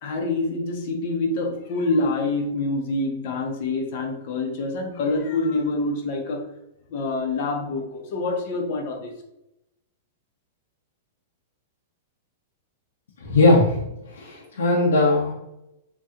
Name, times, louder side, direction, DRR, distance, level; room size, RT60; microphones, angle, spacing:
voice 1, 0.0-6.5 6.9-9.1, left 2 dB, 55° left, 3 dB, 1.0 m, -26 dB
voice 2, 13.2-15.3, left 2 dB, 85° left, -4 dB, 0.9 m, -19 dB
3.1 x 2.7 x 3.8 m, 0.86 s
hypercardioid pair, 125°, 0 cm